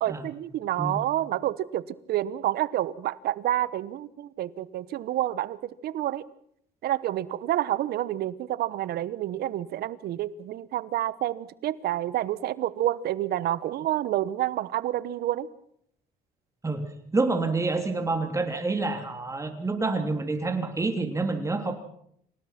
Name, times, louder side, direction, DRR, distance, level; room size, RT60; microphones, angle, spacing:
voice 1, 0.0-6.2 6.8-15.5, right 13 dB, 70° right, 18 dB, 1.0 m, -29 dB
voice 2, 16.6-21.7, right 3 dB, 20° right, 6 dB, 3.3 m, -28 dB
27.5 x 17.5 x 5.9 m, 0.70 s
cardioid pair, 110°, 17 cm